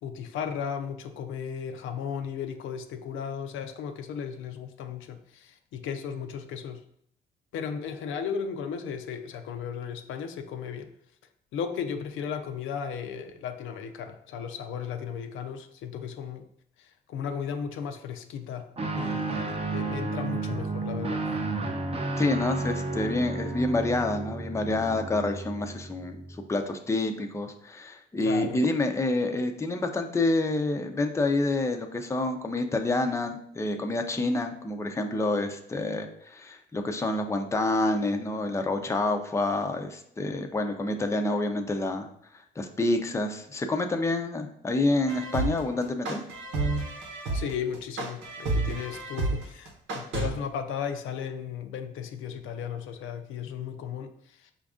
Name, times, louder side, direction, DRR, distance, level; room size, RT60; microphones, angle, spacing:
voice 1, 0.0-6.8 7.5-10.9 11.5-16.5 16.8-21.2 28.2-28.6 47.3-54.5, left 7 dB, 80° left, 7 dB, 0.5 m, -35 dB
Guitar, 18.8-26.4, right 3 dB, 30° right, 0.7 m, -32 dB
voice 2, 22.2-26.2 26.5-42.1 42.6-46.2, left 2 dB, 15° left, 5 dB, 0.5 m, -28 dB
sound 1, 45.1-50.3, right 3 dB, 80° right, 1.0 m, -30 dB
5.2 x 2.5 x 3.5 m, 0.70 s
cardioid pair, 90°, 20 cm